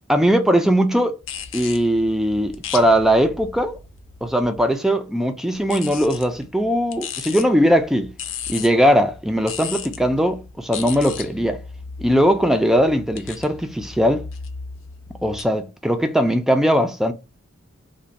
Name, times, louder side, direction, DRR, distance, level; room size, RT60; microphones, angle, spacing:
voice 1, 0.1-1.1 1.5-3.8 4.2-8.1 8.5-11.6 12.0-14.2 15.2-17.1, equal, ahead, 0.3 m, -19 dB
sound 1, 1.2-4.7 5.5-15.4, left 7 dB, 75° left, 0.5 m, -36 dB
2.5 x 2.1 x 3.9 m
head